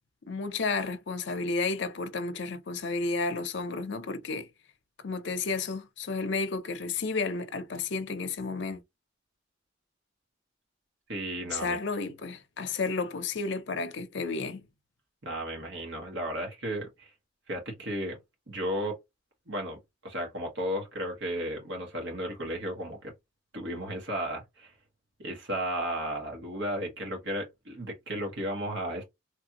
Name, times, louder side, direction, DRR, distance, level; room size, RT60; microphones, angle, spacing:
voice 1, 0.3-4.5 5.0-8.8 11.5-14.7, left 4 dB, 65° left, 0.5 m, -32 dB
voice 2, 11.1-11.8 15.2-17.1 17.5-18.2 18.5-19.0 19.5-19.8 20.0-23.1 23.5-24.7 25.2-29.0, equal, 70° right, 1.4 m, -34 dB
3.2 x 2.5 x 2.8 m
head